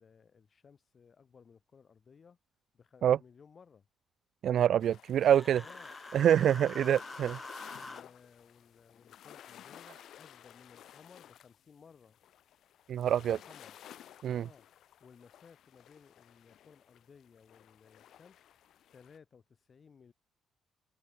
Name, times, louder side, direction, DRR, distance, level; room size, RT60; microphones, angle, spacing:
voice 1, 0.0-2.4 2.7-3.9 5.6-5.9 6.2-6.4 7.1-7.4 7.7-12.2 13.2-13.8 14.3-14.7 15.0-18.4 18.9-20.1, left 6 dB, 45° left, 5.5 m, -59 dB
voice 2, 4.4-5.6 6.1-7.4 12.9-13.4 14.2-14.5, right 10 dB, 65° right, 0.3 m, -26 dB
sound 1, 4.8-19.2, left 11 dB, 70° left, 2.4 m, -55 dB
Human voice, 5.2-8.0, left 2 dB, 15° left, 0.8 m, -46 dB
cardioid pair, 90°, 0 cm